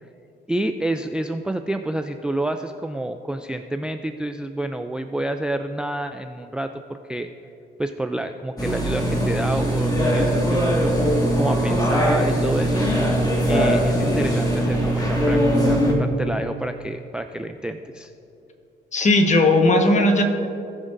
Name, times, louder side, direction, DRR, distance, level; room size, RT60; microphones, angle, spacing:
voice 1, 0.5-7.3 7.8-12.9 13.5-15.4 15.7-18.1, right 1 dB, 5° right, 7 dB, 0.3 m, -28 dB
sound 1, 8.6-15.9, equal, 20° left, 1.7 m, -21 dB
voice 2, 18.9-20.2, left 2 dB, 35° left, 4 dB, 1.3 m, -17 dB
18.5 x 6.3 x 2.6 m, 2.8 s
cardioid pair, 90°, 20 cm